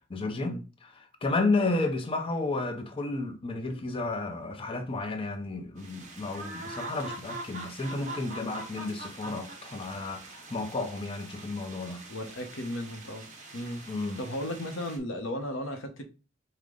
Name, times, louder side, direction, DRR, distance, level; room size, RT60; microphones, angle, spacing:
voice 1, 0.1-12.0 13.9-14.2, left 3 dB, 30° left, 0.5 m, -32 dB
sound 1, 5.8-15.0, right 2 dB, 40° right, 0.8 m, -44 dB
voice 2, 12.1-13.3 13.5-13.9 14.2-16.0, left 1 dB, 90° left, 0.9 m, -35 dB
5.0 x 2.2 x 3.7 m
head